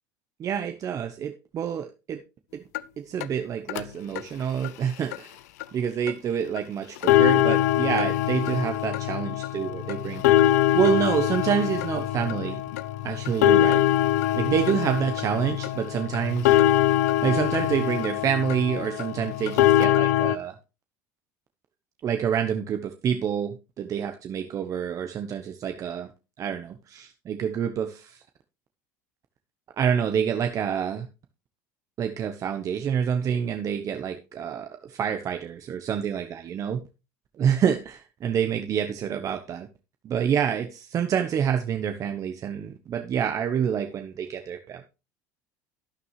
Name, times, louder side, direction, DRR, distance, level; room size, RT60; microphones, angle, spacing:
voice 1, 0.4-2.2 2.5-2.6 3.0-5.4 5.7-10.2 10.7-12.6 13.0-13.9 14.4-16.6 17.2-20.5 22.0-26.1 26.4-28.2 29.8-31.1 32.0-36.8 37.4-39.7 40.0-44.8, right 8 dB, 40° right, 7 dB, 1.0 m, -27 dB
sound 1, 2.7-2.8 3.2-3.3 3.7-3.8 4.2-4.3 4.6-4.7 5.1-5.2 5.6-5.7 6.1-6.2 6.6-6.7 7.0-20.4, left 13 dB, 80° left, 0.6 m, -23 dB
11.5 x 9.4 x 3.2 m, 0.29 s
supercardioid pair, 100°, 8 cm